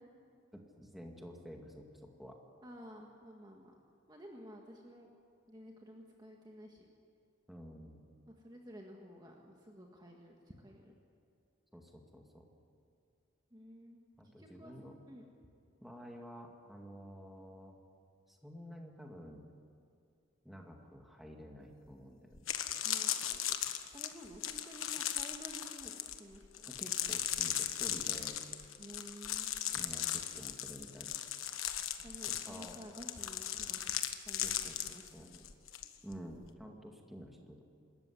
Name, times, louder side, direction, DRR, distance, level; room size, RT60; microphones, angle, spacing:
voice 1, 0.5-2.4 7.5-8.0 11.7-12.5 14.2-15.0 15.8-17.8 18.3-19.4 20.4-22.4 26.7-28.4 29.7-31.1 32.3-32.8 33.5-33.8 34.4-35.3 36.0-37.6, equal, ahead, 1 dB, 2.1 m, -50 dB
voice 2, 2.6-3.7 4.1-5.1 5.5-6.9 8.4-10.9 13.5-14.0 14.4-14.7 15.1-15.3 22.8-23.6 23.9-26.7 28.8-29.6 32.0-33.9 34.2-35.4, equal, 20° right, 0 dB, 1.6 m, -52 dB
sound 1, 21.9-22.0 22.3-35.9 36.1-36.5, left 11 dB, 85° left, 1.3 m, -37 dB
26.0 x 14.0 x 9.7 m, 2.4 s
head